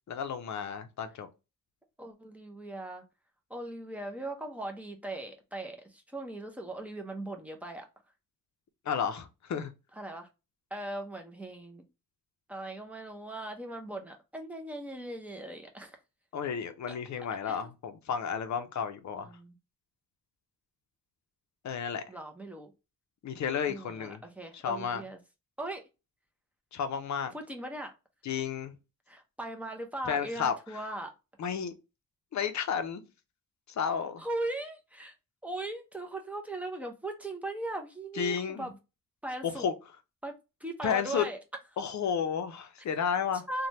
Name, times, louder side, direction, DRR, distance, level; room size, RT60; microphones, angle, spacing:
voice 1, 0.1-1.3 8.9-9.7 16.3-19.3 21.6-22.0 23.2-24.2 24.5-25.0 26.7-27.3 28.2-28.7 30.1-30.5 31.4-31.7 32.3-33.0 33.8-34.2 38.2-38.7 39.4-39.7 40.8-41.2 41.8-43.4, left 7 dB, 60° left, 0.5 m, -32 dB
voice 2, 2.0-3.0 3.5-7.9 10.0-10.3 10.7-11.8 12.5-16.0 16.9-17.0 17.4-17.7 19.2-19.6 22.1-22.7 23.7-25.2 25.6-25.8 27.3-27.9 29.1-31.1 34.2-35.1 35.4-38.8 39.2-39.7 40.2-40.3 40.6-41.4 43.5-43.7, right 2 dB, 5° right, 0.5 m, -39 dB
3.1 x 2.2 x 2.6 m
wide cardioid pair, 155°, 33 cm